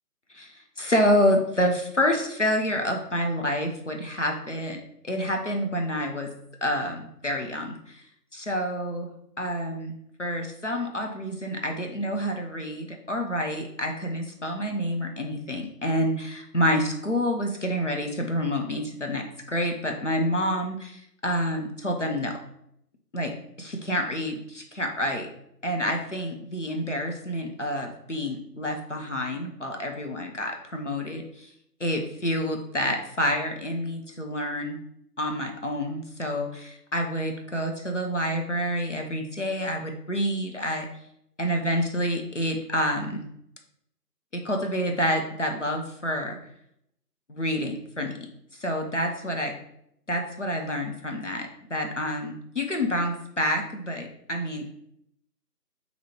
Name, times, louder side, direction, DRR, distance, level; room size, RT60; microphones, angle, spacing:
voice 1, 0.3-6.3 6.6-8.0 8.3-9.1 9.4-22.4 23.1-25.3 25.6-31.5 31.8-34.8 35.2-40.9 41.4-43.2 44.3-46.4 47.3-48.2 48.6-49.5 50.1-54.8, equal, 50° left, 3 dB, 0.5 m, -28 dB
4.1 x 2.7 x 3.0 m, 0.74 s
figure-of-eight pair, 165°, 49 cm